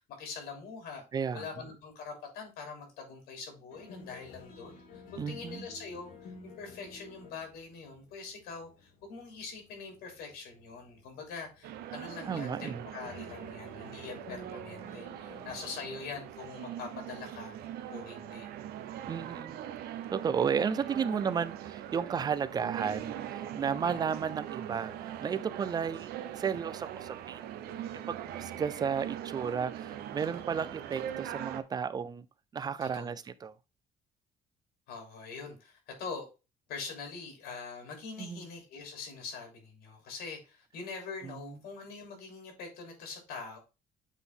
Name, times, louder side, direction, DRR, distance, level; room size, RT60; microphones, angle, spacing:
voice 1, 0.0-1.0 1.3-18.5 23.8-24.1 32.8-33.2 34.9-36.3 36.7-43.6, left 4 dB, 85° left, 3.2 m, -44 dB
voice 2, 1.1-1.4 5.2-5.7 12.3-12.8 19.1-27.4 28.1-32.3 32.5-33.5 38.2-38.5 41.2-41.5, right 6 dB, 25° right, 0.4 m, -33 dB
sound 1, 3.7-15.5, left 4 dB, 70° left, 2.2 m, -53 dB
sound 2, 11.6-31.6, right 11 dB, 80° right, 0.8 m, -41 dB
8.1 x 3.9 x 3.6 m
cardioid pair, 155°, 16 cm